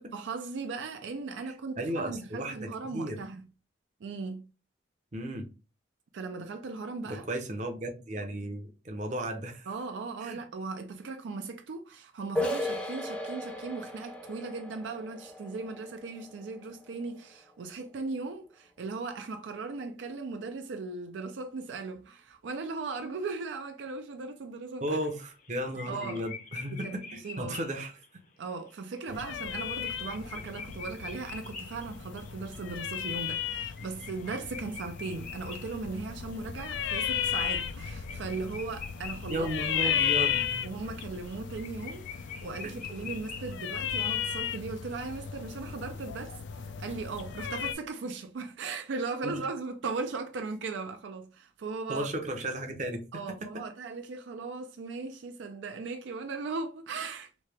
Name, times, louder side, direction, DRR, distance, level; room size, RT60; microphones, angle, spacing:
voice 1, 0.1-3.4 4.0-4.4 6.1-7.2 9.7-25.0 25.9-26.2 26.7-27.6 28.4-39.5 39.8-40.0 40.6-52.1 53.1-57.3, right 4 dB, 75° right, 0.4 m, -38 dB
voice 2, 1.8-3.2 5.1-5.5 7.1-9.7 10.2-10.4 24.8-27.9 39.3-40.7 42.6-42.9 49.2-49.4 51.9-53.0, right 1 dB, 40° right, 0.7 m, -34 dB
sound 1, 12.4-17.8, left 1 dB, 5° left, 0.5 m, -37 dB
sound 2, 25.1-25.5 25.8-28.0 28.7-28.8 29.0-29.1 29.5-36.3 36.7-39.6 39.9-40.0 40.3-43.5, left 5 dB, 45° left, 0.7 m, -45 dB
sound 3, 29.1-47.7, left 9 dB, 75° left, 0.4 m, -35 dB
3.1 x 2.7 x 3.3 m
head